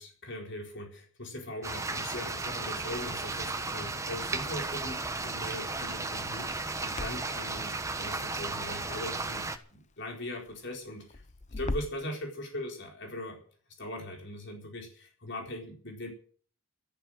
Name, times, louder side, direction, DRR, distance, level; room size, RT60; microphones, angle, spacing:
voice 1, 0.0-11.2 11.6-13.4 13.8-16.1, left 1 dB, 55° left, 2 dB, 4.3 m, -40 dB
sound 1, 1.6-9.6, right 3 dB, 15° right, 1.2 m, -35 dB
Crackle, 2.8-12.1, left 2 dB, 30° left, 0.7 m, -44 dB
13.5 x 11.5 x 7.6 m, 0.44 s
head